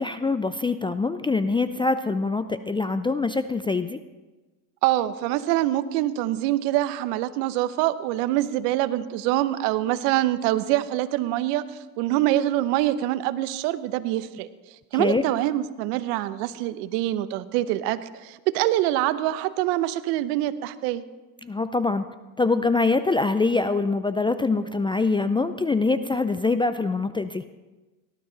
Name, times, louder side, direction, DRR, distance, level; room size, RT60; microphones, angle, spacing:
voice 1, 0.0-4.0 15.0-15.2 21.4-22.1 22.4-27.4, left 3 dB, 10° left, 11 dB, 0.3 m, -24 dB
voice 2, 4.8-14.5 14.9-21.0, right 14 dB, 75° right, 14 dB, 0.9 m, -25 dB
18.0 x 12.0 x 3.9 m, 1.2 s
hypercardioid pair, 85°, 48 cm